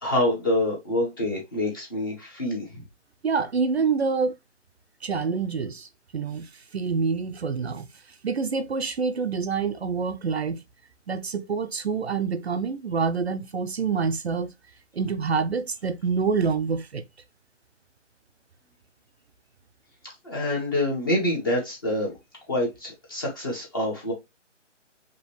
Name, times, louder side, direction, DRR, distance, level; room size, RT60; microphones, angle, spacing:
voice 1, 0.0-2.8 20.2-22.1 22.5-24.1, left 1 dB, 15° left, 1.0 m, -26 dB
voice 2, 3.2-4.3 5.0-5.9 6.1-7.9 8.2-10.6 11.1-14.5 14.9-17.0, right 5 dB, 55° right, 0.6 m, -26 dB
5.1 x 2.9 x 3.1 m
hypercardioid pair, 170°, 38 cm